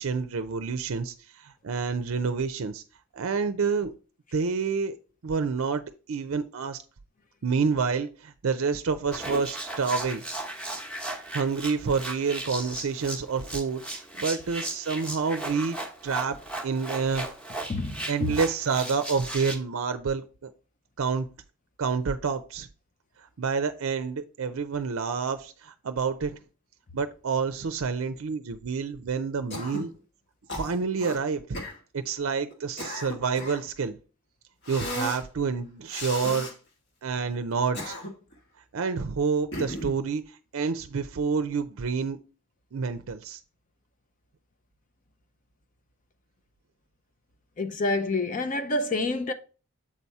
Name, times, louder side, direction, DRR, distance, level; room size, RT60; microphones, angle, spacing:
voice 1, 0.0-2.8 3.1-3.9 4.3-4.9 5.2-5.8 6.1-6.8 7.4-10.2 11.3-15.8 16.0-16.4 16.6-17.3 18.1-20.5 21.0-21.3 21.8-22.7 23.4-26.4 26.9-29.9 30.6-31.4 31.9-34.0 34.7-36.5 37.0-37.9 38.7-42.2 42.7-43.4, right 5 dB, 65° right, 0.5 m, -28 dB
sound 1, 9.1-19.6, right 1 dB, 5° left, 0.9 m, -36 dB
voice 2, 17.7-18.4 47.6-49.3, left 2 dB, 35° left, 0.5 m, -28 dB
Cough, 29.5-29.9 30.5-31.2 31.5-31.8 32.5-33.7 34.7-35.2 35.9-36.5 37.5-38.3 39.5-40.0, left 1 dB, 50° left, 1.4 m, -35 dB
7.3 x 4.2 x 4.6 m
head